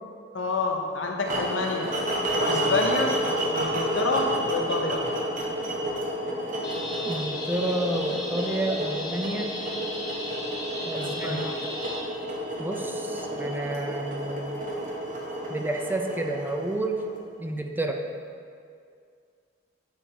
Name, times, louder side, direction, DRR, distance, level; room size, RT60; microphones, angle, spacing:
voice 1, 0.3-1.9 2.4-3.1 3.5-5.0 11.0-11.5, left 3 dB, 80° left, 2 dB, 0.8 m, -28 dB
sound 1, 1.2-17.4, equal, 45° right, 1.0 m, -30 dB
sound 2, 6.6-12.0, left 1 dB, 60° left, 1.5 m, -36 dB
voice 2, 7.0-9.6 10.9-11.4 12.6-14.7 15.5-17.0 17.4-18.0, right 1 dB, 10° right, 3 dB, 0.4 m, -30 dB
9.6 x 4.0 x 3.9 m, 2.3 s
head